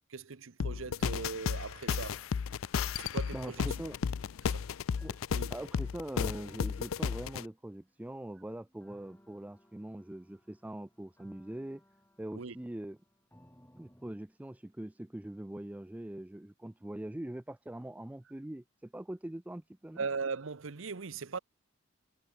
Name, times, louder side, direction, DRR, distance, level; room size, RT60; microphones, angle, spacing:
voice 1, 0.1-2.3 3.0-3.8 4.4-4.7 5.3-5.5 12.3-12.5 20.0-21.4, right 4 dB, 75° right, 0.8 m, -39 dB
sound 1, 0.6-7.4, left 6 dB, 85° left, 0.4 m, -33 dB
voice 2, 3.3-4.0 5.0-5.2 5.5-11.8 12.2-13.0 13.8-20.0, right 1 dB, 5° right, 0.3 m, -42 dB
sound 2, 7.5-14.2, equal, 10° left, 4.7 m, -64 dB
head